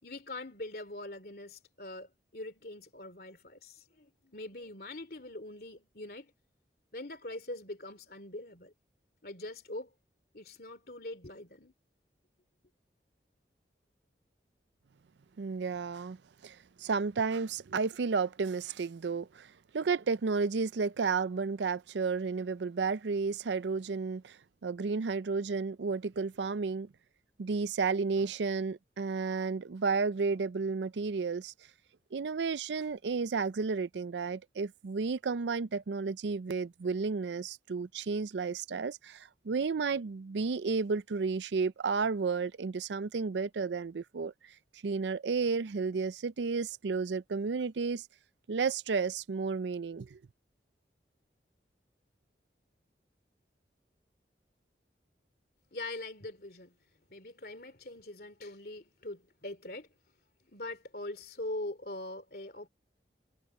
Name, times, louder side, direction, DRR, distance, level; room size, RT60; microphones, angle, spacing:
voice 1, 0.0-6.3 6.9-8.7 9.2-9.9 10.3-11.7 55.7-56.7 57.1-59.9 60.4-62.7, left 2 dB, 55° left, 2.9 m, -43 dB
voice 2, 15.4-16.2 16.4-24.4 24.6-26.9 27.4-31.5 32.1-44.3 44.8-48.1 48.5-50.2, right 4 dB, 85° right, 0.5 m, -32 dB
head